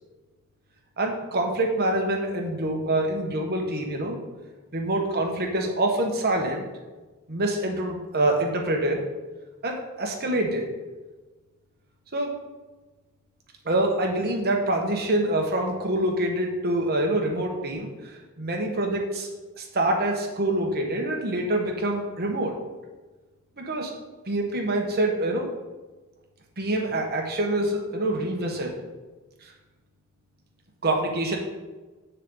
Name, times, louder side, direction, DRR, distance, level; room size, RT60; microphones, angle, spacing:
voice 1, 1.0-4.2 4.7-6.6 7.3-9.0 9.6-10.7 12.1-12.4 13.6-19.3 19.6-22.5 23.6-23.9 24.3-25.5 26.6-28.7 30.8-31.4, right 1 dB, 45° right, 1 dB, 1.4 m, -26 dB
8.1 x 6.5 x 4.0 m, 1.2 s
head